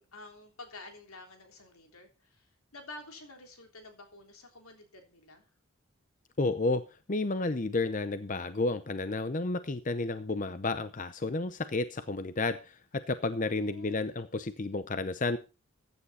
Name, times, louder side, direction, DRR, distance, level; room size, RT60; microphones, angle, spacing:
voice 1, 0.0-5.5 13.3-14.0, left 2 dB, 85° left, 5 dB, 3.4 m, -50 dB
voice 2, 6.4-6.8 7.1-15.4, left 3 dB, 35° left, 12 dB, 0.6 m, -31 dB
15.0 x 9.9 x 4.2 m, 0.32 s
head